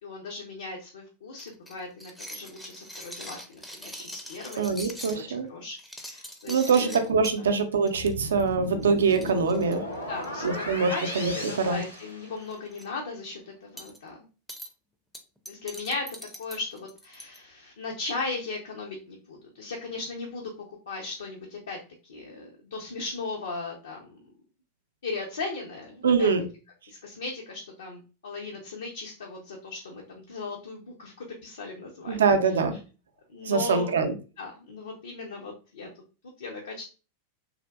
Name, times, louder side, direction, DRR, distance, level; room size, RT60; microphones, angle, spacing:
voice 1, 0.0-7.1 7.4-7.5 10.1-14.2 15.5-20.5 20.9-21.8 22.0-24.2 25.0-26.3 26.9-32.6 33.3-34.0 34.4-35.9 36.4-36.8, left 3 dB, 65° left, 0 dB, 0.6 m, -37 dB
sound 1, 1.4-5.2 5.7-7.4 7.9-8.1 8.4-8.5 8.8-8.9 9.1-10.5 11.2-11.6 11.9-12.0 12.4-12.8 13.8-14.0 14.5-14.7 15.1-17.4, equal, 5° left, 0.5 m, -42 dB
voice 2, 4.6-5.5 6.5-9.8 10.4-11.8 26.0-26.5 32.1-32.8 33.4-34.1, right 5 dB, 65° right, 6 dB, 0.5 m, -24 dB
sound 2, 7.9-12.7, equal, 90° left, 1.1 m, -36 dB
3.4 x 2.5 x 2.3 m, 0.33 s
figure-of-eight pair, 90°, 0 cm